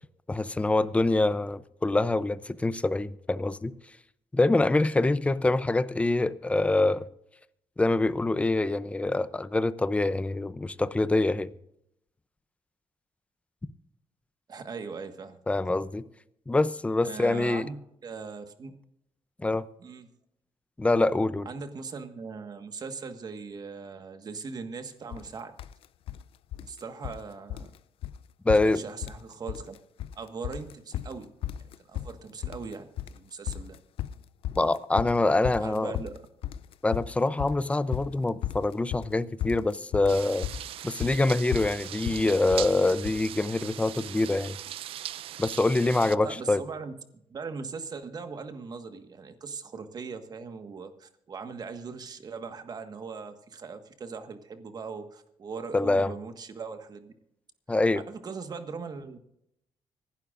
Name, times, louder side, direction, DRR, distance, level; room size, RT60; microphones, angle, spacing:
voice 1, 0.3-3.7 4.3-7.0 7.8-11.5 15.5-16.0 16.5-17.6 19.4-19.6 20.8-21.5 28.4-28.8 34.5-35.9 36.8-40.5 40.8-44.6 45.4-46.6 55.7-56.1 57.7-58.0, left 2 dB, 15° left, 0.6 m, -25 dB
voice 2, 14.5-15.4 17.0-17.7 18.0-18.7 19.8-20.1 21.4-25.6 26.6-27.7 28.6-29.8 30.1-31.3 31.6-33.8 35.6-36.2 46.2-57.1 58.1-59.2, right 5 dB, 45° right, 1.5 m, -40 dB
sound 1, 25.1-25.3 25.6-26.2 26.5-27.2 27.5-27.8 28.0-28.2 28.5-29.2 29.5-30.1 30.4-43.2, left 12 dB, 75° left, 0.5 m, -35 dB
sound 2, 40.1-46.2, right 12 dB, 75° right, 0.4 m, -39 dB
25.5 x 11.5 x 2.6 m
cardioid pair, 115°, 10 cm